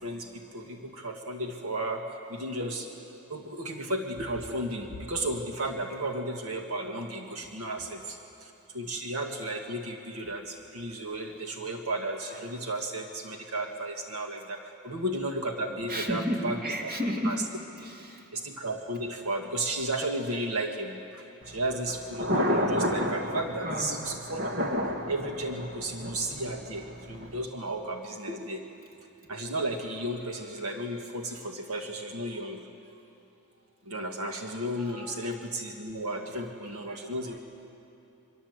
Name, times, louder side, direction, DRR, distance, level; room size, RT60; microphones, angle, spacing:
voice 1, 0.0-2.9 3.3-16.6 17.2-17.4 18.3-24.4 25.1-28.6 29.3-32.6 33.9-37.4, right 1 dB, 85° right, 3 dB, 1.8 m, -34 dB
voice 2, 15.9-17.4 17.8-18.3 23.6-24.0 30.3-30.5 30.9-31.0 32.3-32.4 32.9-33.0 34.7-35.3 36.9-37.4, equal, 40° right, 1 dB, 3.0 m, -34 dB
Thunder, 21.4-27.4, equal, 55° right, 1.9 m, -31 dB
27.0 x 24.0 x 8.1 m, 3.0 s
head